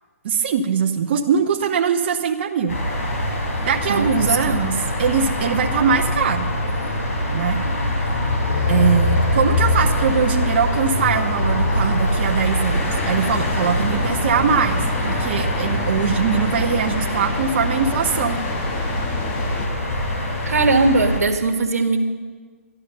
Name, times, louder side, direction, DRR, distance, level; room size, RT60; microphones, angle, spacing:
voice 1, 0.2-2.8 3.6-6.5 7.3-7.6 8.0-8.1 8.7-18.4, right 7 dB, 45° right, 3 dB, 0.8 m, -22 dB
sound 1, 2.7-21.2, left 1 dB, 65° left, 4.5 m, -24 dB
voice 2, 3.9-4.6 20.4-22.0, right 3 dB, 85° right, 5 dB, 1.6 m, -19 dB
sound 2, 6.4-15.0, equal, 85° left, 5.1 m, -28 dB
sound 3, 12.7-19.7, left 4 dB, 20° left, 1.1 m, -31 dB
12.0 x 11.5 x 6.6 m, 1.5 s
hypercardioid pair, 155°, 8 cm